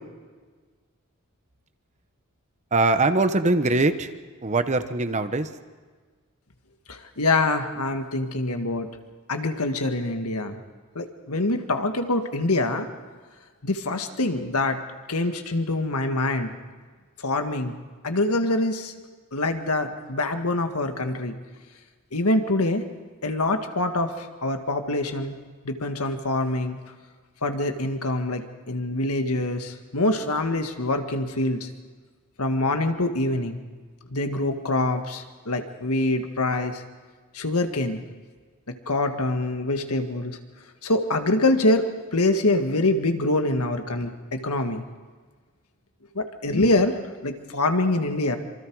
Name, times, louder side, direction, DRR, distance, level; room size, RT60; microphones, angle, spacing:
voice 1, 2.7-4.1 4.4-5.5, right 2 dB, 30° right, 10 dB, 0.9 m, -22 dB
voice 2, 6.9-8.9 9.3-10.6 11.0-12.9 13.6-14.8 15.1-16.5 17.2-17.8 18.0-18.9 19.3-21.4 22.1-22.8 23.2-25.4 25.7-26.8 27.4-31.7 32.4-33.6 34.1-36.8 37.3-38.0 38.7-40.4 40.8-44.8 46.2-46.9 47.2-48.4, left 2 dB, 80° left, 6 dB, 1.8 m, -25 dB
26.5 x 24.5 x 4.8 m, 1.5 s
head